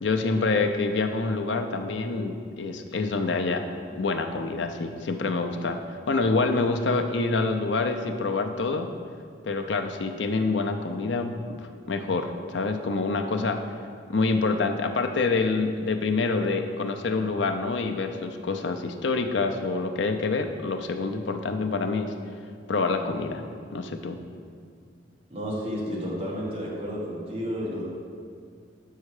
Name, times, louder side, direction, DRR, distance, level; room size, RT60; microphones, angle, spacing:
voice 1, 0.0-5.8 6.1-8.9 9.4-11.6 11.9-13.6 14.1-22.1 22.7-23.4 23.7-24.2, left 3 dB, 85° left, 6 dB, 0.6 m, -26 dB
voice 2, 25.3-27.8, equal, 35° right, -5 dB, 1.7 m, -31 dB
7.3 x 5.6 x 4.8 m, 2.2 s
head